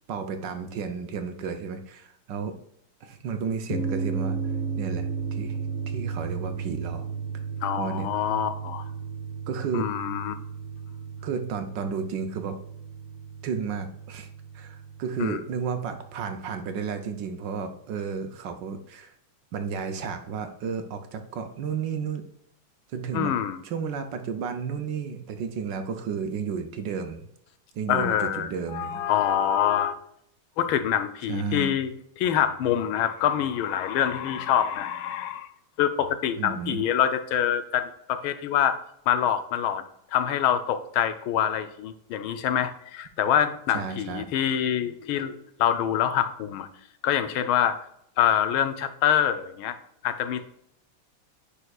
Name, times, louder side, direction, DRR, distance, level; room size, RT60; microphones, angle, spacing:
voice 1, 0.1-2.5 3.0-4.4 4.8-5.6 5.9-7.1 7.8-8.1 9.5-9.9 11.2-12.6 13.4-14.3 14.5-19.2 19.5-22.2 22.9-23.3 23.6-27.3 27.7-29.1 31.3-31.7 36.4-36.9 43.7-44.3, right 6 dB, 70° right, 7 dB, 1.2 m, -32 dB
sound 1, 3.7-16.6, right 5 dB, 50° left, 0.4 m, -34 dB
voice 2, 7.6-8.8 9.7-10.4 15.2-15.4 23.1-23.6 27.9-30.0 30.6-31.9 32.2-35.5 35.8-38.8 39.1-39.8 40.1-46.7 47.0-47.8 48.2-49.8 50.0-50.4, left 10 dB, 80° left, 10 dB, 1.4 m, -25 dB
9.8 x 4.4 x 2.3 m, 0.70 s
omnidirectional pair, 2.3 m